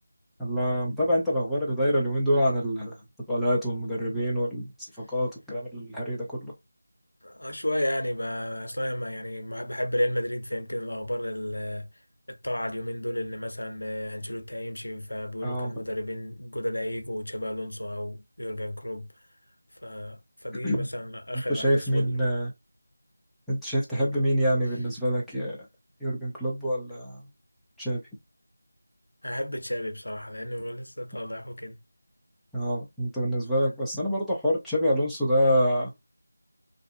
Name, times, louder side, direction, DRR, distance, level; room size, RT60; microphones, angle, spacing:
voice 1, 0.4-2.9 3.3-4.7 5.1-6.5 15.4-15.7 20.6-20.8 21.5-22.5 23.5-25.6 26.0-27.1 27.8-28.0 32.5-35.9, equal, ahead, 0.5 m, -26 dB
voice 2, 7.2-11.9 12.3-19.1 19.8-20.2 20.4-22.2 24.0-24.1 29.2-31.7, left 1 dB, 75° left, 0.6 m, -32 dB
2.6 x 2.4 x 2.3 m
figure-of-eight pair, 170°, 0 cm